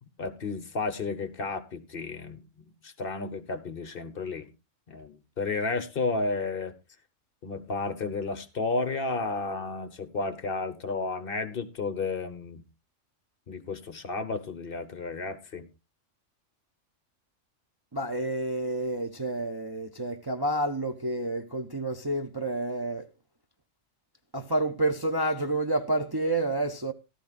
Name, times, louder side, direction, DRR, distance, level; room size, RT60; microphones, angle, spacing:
voice 1, 0.0-4.5 4.9-6.7 7.4-12.7 13.5-15.7, left 3 dB, 50° left, 1.2 m, -32 dB
voice 2, 17.9-23.1 24.3-26.9, right 2 dB, 35° right, 0.4 m, -29 dB
14.5 x 13.0 x 2.4 m
omnidirectional pair, 1.3 m